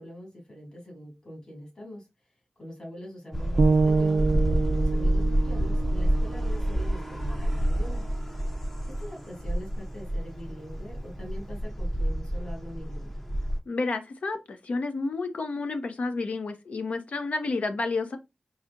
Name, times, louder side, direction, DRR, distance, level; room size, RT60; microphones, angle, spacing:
voice 1, 0.0-2.1 2.6-8.0 8.9-13.2, equal, 35° left, 2.2 m, -43 dB
sound 1, 3.3-13.6, equal, 10° left, 0.5 m, -28 dB
sound 2, 3.6-7.7, right 4 dB, 70° right, 0.3 m, -27 dB
voice 2, 13.7-18.2, left 3 dB, 75° left, 0.6 m, -30 dB
4.8 x 2.8 x 2.4 m
wide cardioid pair, 105°, 2 cm